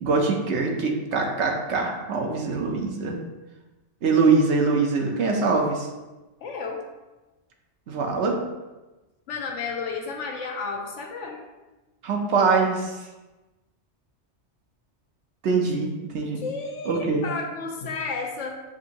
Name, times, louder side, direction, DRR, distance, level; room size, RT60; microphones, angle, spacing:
voice 1, 0.0-3.2 4.0-5.9 7.9-8.4 12.0-13.0 15.4-16.4 16.9-17.2, right 4 dB, 70° right, 1 dB, 1.0 m, -23 dB
voice 2, 6.4-6.8 9.3-11.4 16.4-18.6, left 4 dB, 80° left, 2 dB, 1.0 m, -32 dB
7.1 x 2.6 x 2.9 m, 1.1 s
omnidirectional pair, 1.2 m